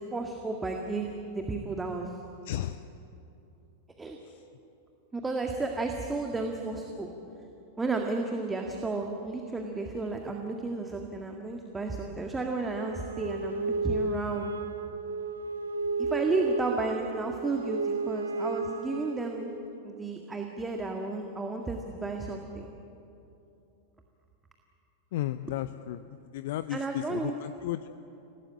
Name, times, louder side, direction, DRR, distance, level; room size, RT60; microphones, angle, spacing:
voice 1, 0.0-2.1 4.0-4.2 5.1-7.1 7.8-14.6 16.0-19.5 19.8-22.7 26.7-27.3, right 3 dB, 10° right, 2 dB, 2.0 m, -33 dB
voice 2, 2.4-2.8 4.2-4.4 25.1-27.9, left 13 dB, 55° left, 12 dB, 0.6 m, -34 dB
Wind instrument woodwind instrument, 12.7-19.5, right 4 dB, 75° right, 1.2 m, -33 dB
28.0 x 18.0 x 8.8 m, 2.8 s
figure-of-eight pair, 90°, 0 cm